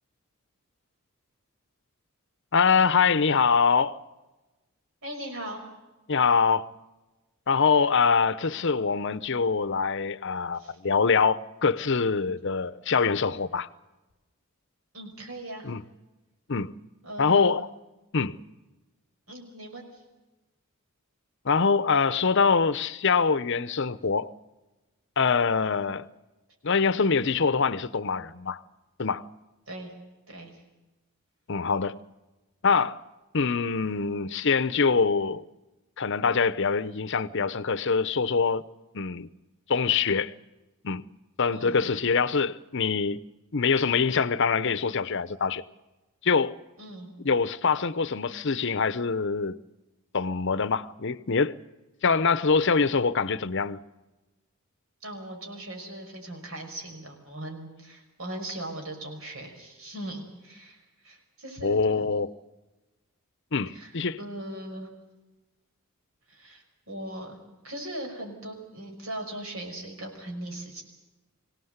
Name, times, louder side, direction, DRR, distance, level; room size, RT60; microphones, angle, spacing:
voice 1, 2.5-4.0 6.1-6.7 7.5-13.7 15.6-15.8 16.5-16.7 17.2-17.7 18.1-18.4 21.4-24.3 25.2-26.1 26.6-28.6 29.0-29.3 31.5-32.0 32.6-33.0 33.3-35.4 36.0-38.6 38.9-39.3 39.7-40.3 40.8-41.0 41.4-43.2 43.5-45.6 46.2-46.6 47.2-49.5 50.1-51.6 52.0-53.8 61.6-62.3 63.5-64.2, left 5 dB, 55° left, 0.7 m, -24 dB
voice 2, 5.0-5.6 10.5-10.8 14.9-15.7 17.0-17.6 19.3-20.0 29.7-29.9 30.3-30.6 41.5-41.9 46.8-47.1 55.0-62.1 63.7-64.9 66.3-67.4 67.6-70.8, right 1 dB, 70° right, 5.8 m, -39 dB
25.0 x 17.5 x 8.0 m
head